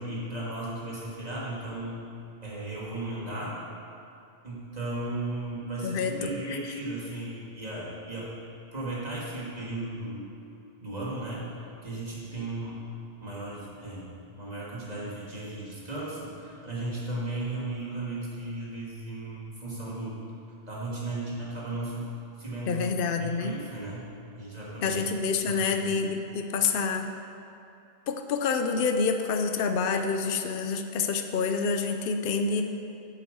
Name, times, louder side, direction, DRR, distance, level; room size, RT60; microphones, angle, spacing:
voice 1, 0.0-2.0 2.4-3.5 4.4-8.3 8.7-10.3 10.8-11.5 11.8-12.8 13.2-20.2 20.7-22.1 22.4-24.1 24.3-25.0 25.4-25.9, right 2 dB, 40° right, -7 dB, 2.7 m, -35 dB
voice 2, 5.8-6.6 22.7-23.5 24.8-27.1 28.1-32.6, left 5 dB, 60° left, 6 dB, 0.9 m, -27 dB
9.3 x 8.4 x 6.9 m, 2.6 s
omnidirectional pair, 1.1 m